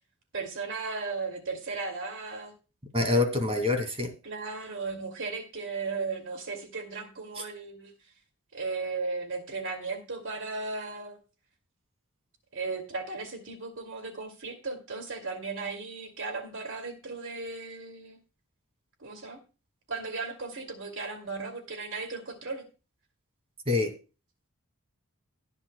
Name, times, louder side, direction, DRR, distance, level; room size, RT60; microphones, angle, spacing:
voice 1, 0.3-2.5 4.2-7.9 8.5-11.2 12.5-18.2 19.0-19.4 19.9-22.7, right 4 dB, 60° right, 6 dB, 2.5 m, -36 dB
voice 2, 2.9-4.1 7.4-7.5 23.7-23.9, left 3 dB, 25° right, 6 dB, 2.2 m, -26 dB
19.0 x 9.6 x 2.2 m, 0.31 s
head